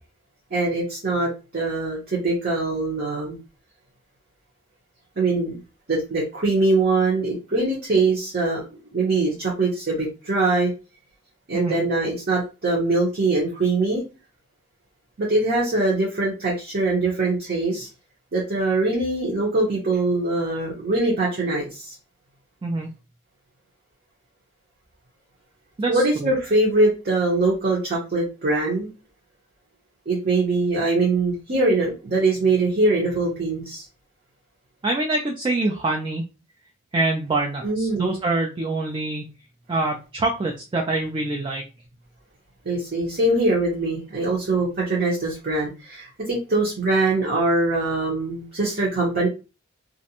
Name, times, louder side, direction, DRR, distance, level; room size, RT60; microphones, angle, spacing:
voice 1, 0.5-3.4 5.2-5.6 5.9-8.6 8.9-10.7 11.5-14.0 15.2-17.9 18.3-21.9 25.9-28.9 30.1-33.9 37.6-38.1 42.6-49.3, right 2 dB, 50° right, -5 dB, 0.8 m, -22 dB
voice 2, 25.8-26.3 34.8-36.2 36.9-39.3 39.7-41.6, right 2 dB, 25° right, 0 dB, 0.3 m, -25 dB
2.5 x 2.1 x 2.8 m, 0.31 s
head